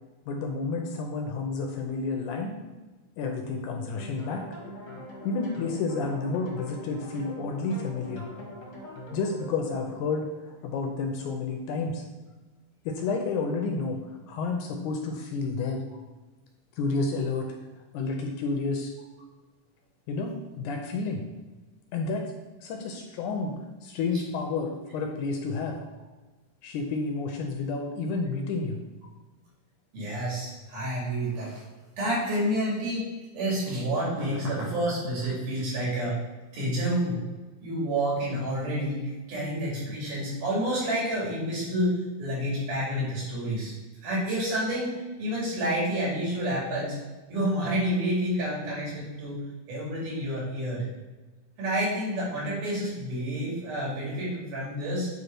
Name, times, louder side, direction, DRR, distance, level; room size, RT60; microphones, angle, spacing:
voice 1, 0.3-2.5 3.2-4.5 5.2-8.3 9.1-10.3 10.6-12.0 12.9-14.0 14.3-15.8 16.8-17.5 17.9-18.9 20.1-21.2 21.9-22.3 22.6-23.5 23.8-25.8 26.6-28.8, left 4 dB, 80° left, 3 dB, 1.9 m, -30 dB
sound 1, 3.9-10.9, left 1 dB, 50° left, 1.1 m, -43 dB
voice 2, 29.9-31.6 32.0-36.2 36.5-37.2 37.6-43.8 44.0-47.0 47.3-49.4 49.7-50.8 51.6-55.1, equal, 70° right, -6 dB, 3.8 m, -29 dB
8.1 x 3.2 x 4.4 m, 1.2 s
omnidirectional pair, 3.9 m